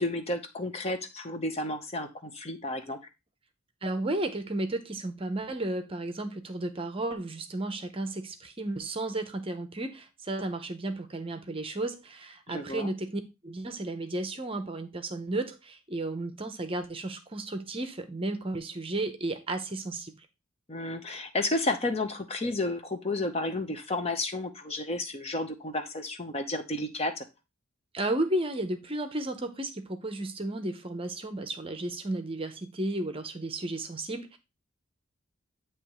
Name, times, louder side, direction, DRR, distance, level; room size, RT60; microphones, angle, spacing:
voice 1, 0.0-3.0 12.5-12.9 20.7-27.3, left 2 dB, 30° left, 0.7 m, -32 dB
voice 2, 3.8-20.3 27.9-34.4, right 2 dB, 25° right, 0.7 m, -33 dB
8.6 x 3.0 x 4.7 m
head